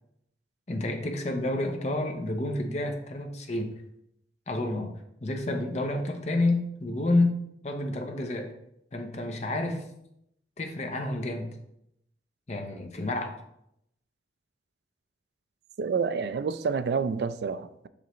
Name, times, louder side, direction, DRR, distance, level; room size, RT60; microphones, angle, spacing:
voice 1, 0.7-3.7 4.5-4.9 5.2-7.3 7.6-8.5 8.9-9.8 10.6-11.5 12.5-13.3, left 2 dB, 40° left, 4 dB, 0.8 m, -29 dB
voice 2, 15.8-17.9, right 5 dB, 65° right, 13 dB, 0.3 m, -28 dB
6.3 x 5.1 x 3.1 m, 0.79 s
head